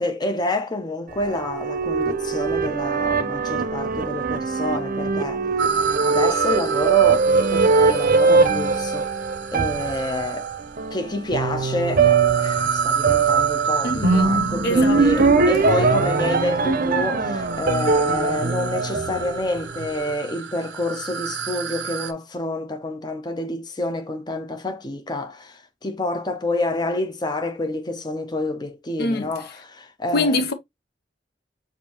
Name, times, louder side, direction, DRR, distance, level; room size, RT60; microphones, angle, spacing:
voice 1, 0.0-5.4 6.0-9.1 9.5-10.5 10.9-30.4, left 1 dB, 25° left, 0.7 m, -28 dB
sound 1, 1.1-19.7, right 4 dB, 50° right, 0.6 m, -21 dB
sound 2, 5.6-10.8 11.6-22.1, right 6 dB, 90° right, 0.6 m, -29 dB
voice 2, 13.8-15.4 29.0-29.3 30.1-30.5, left 2 dB, 60° left, 0.7 m, -25 dB
6.6 x 2.6 x 2.8 m
head